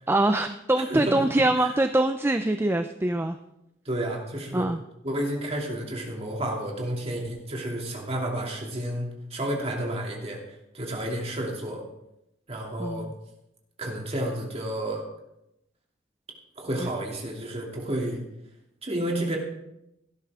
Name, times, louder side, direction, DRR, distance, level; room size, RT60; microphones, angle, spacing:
voice 1, 0.1-3.4 4.5-4.8 12.8-13.1 16.8-16.9, right 1 dB, 10° right, 8 dB, 0.5 m, -24 dB
voice 2, 0.7-1.2 1.6-1.7 3.8-4.7 5.0-10.4 10.7-11.8 12.5-13.1 13.8-15.0 16.6-18.2 18.8-19.4, right 1 dB, 35° right, 0 dB, 2.8 m, -31 dB
17.0 x 12.0 x 3.7 m, 0.86 s
head